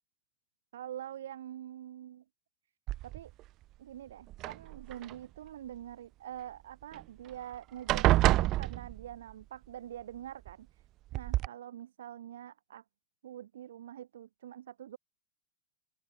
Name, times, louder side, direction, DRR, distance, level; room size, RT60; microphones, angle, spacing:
voice 1, 0.7-2.2 3.0-3.3 3.8-10.8 11.1-12.8 13.2-15.0, right 11 dB, 60° right, 5.7 m, -45 dB
sound 1, 2.9-3.4 4.3-5.1 6.9-7.0 7.3-7.5 7.9-9.3 10.5-10.6 11.1-11.5, right 16 dB, 35° right, 0.7 m, -28 dB
open air
figure-of-eight pair, 90°, 0 cm